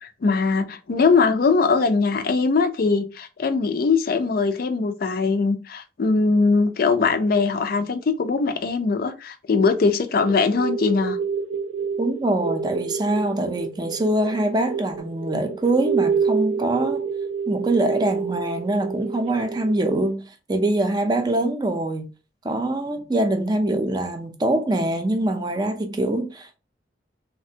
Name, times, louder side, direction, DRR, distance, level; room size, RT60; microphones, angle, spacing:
voice 1, 0.0-11.2, left 4 dB, 55° left, 0.4 m, -21 dB
sound 1, 10.2-20.0, right 6 dB, 85° right, 0.4 m, -28 dB
voice 2, 12.0-17.0 17.5-22.1 22.4-26.6, right 1 dB, 25° right, 0.4 m, -24 dB
3.3 x 2.1 x 2.7 m
head